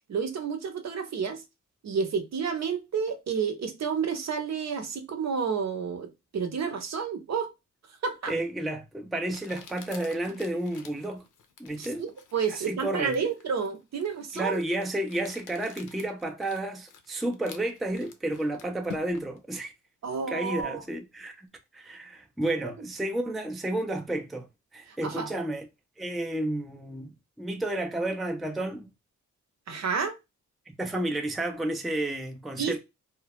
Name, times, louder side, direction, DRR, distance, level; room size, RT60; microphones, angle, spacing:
voice 1, 0.1-1.4 1.8-7.5 8.0-8.3 11.8-14.6 20.0-20.8 24.9-25.3 29.7-30.1 32.6-32.8, right 6 dB, 60° right, 0.7 m, -30 dB
voice 2, 8.3-11.2 11.6-12.0 12.5-13.1 14.3-19.7 20.3-21.5 21.7-24.5 24.7-25.7 26.0-27.1 27.4-28.9 30.7-32.8, right 1 dB, ahead, 0.4 m, -31 dB
Crumpling crinkling, 8.4-8.5 9.3-19.4, left 6 dB, 80° left, 0.6 m, -49 dB
2.2 x 2.0 x 2.8 m
cardioid pair, 80°, 31 cm